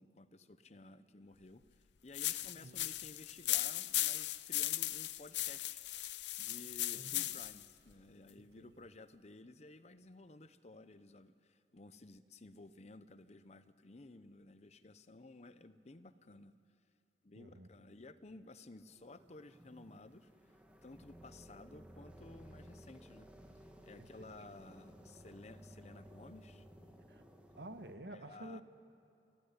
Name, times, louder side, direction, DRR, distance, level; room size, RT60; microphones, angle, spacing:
voice 1, 0.0-5.8 6.4-16.6 17.2-23.3 23.8-26.7 28.1-28.6, left 2 dB, 40° left, 13 dB, 0.7 m, -55 dB
sound 1, 2.1-7.6, left 15 dB, 80° left, 0.6 m, -37 dB
voice 2, 6.9-7.4 8.6-8.8 17.4-17.7 24.0-24.1 27.1-27.2 27.5-28.6, right 1 dB, 70° right, 9 dB, 1.3 m, -50 dB
sound 2, 18.7-27.9, equal, 10° right, 2.0 m, -57 dB
29.0 x 14.0 x 9.7 m, 2.9 s
head